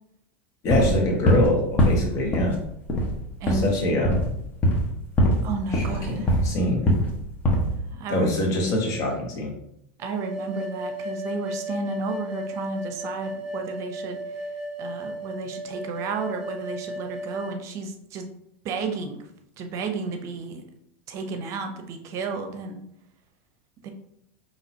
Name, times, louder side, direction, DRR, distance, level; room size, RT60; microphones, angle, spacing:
voice 1, 0.6-2.6 3.5-4.2 5.7-6.9 8.1-9.5, left 1 dB, 50° left, 0 dB, 1.5 m, -24 dB
sound 1, 0.7-1.5 1.8-2.6 2.9-3.2 3.5-3.7 4.0-4.3 4.6-4.9 5.2-5.4 5.7-6.5 6.9-7.1 7.4-7.7, equal, 30° left, 1.2 m, -21 dB
voice 2, 5.4-6.3 7.9-8.3 10.0-14.2 14.8-18.3 18.6-19.2 19.6-20.6 21.1-22.8 23.8-23.9, right 3 dB, 45° right, 5 dB, 0.7 m, -32 dB
sound 2, 10.0-17.6, right 1 dB, 15° right, 1.6 m, -34 dB
5.7 x 3.0 x 2.8 m, 0.75 s
hypercardioid pair, 105°, 7 cm